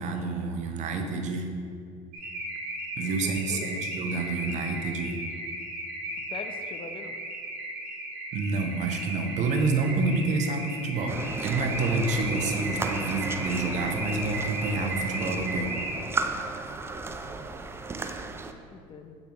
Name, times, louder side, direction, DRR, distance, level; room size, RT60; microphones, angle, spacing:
voice 1, 0.0-1.5 3.0-5.2 8.3-15.8, right 3 dB, 50° right, 5 dB, 0.8 m, -28 dB
Car / Alarm, 2.1-16.3, right 1 dB, 65° right, 1.5 m, -35 dB
voice 2, 3.2-3.8 6.3-7.2 17.1-17.6 18.7-19.2, left 4 dB, 35° left, 7 dB, 0.6 m, -43 dB
sound 1, 11.1-18.5, right 3 dB, 15° right, 0.4 m, -35 dB
8.2 x 5.3 x 3.0 m, 2.2 s
supercardioid pair, 90°, 15 cm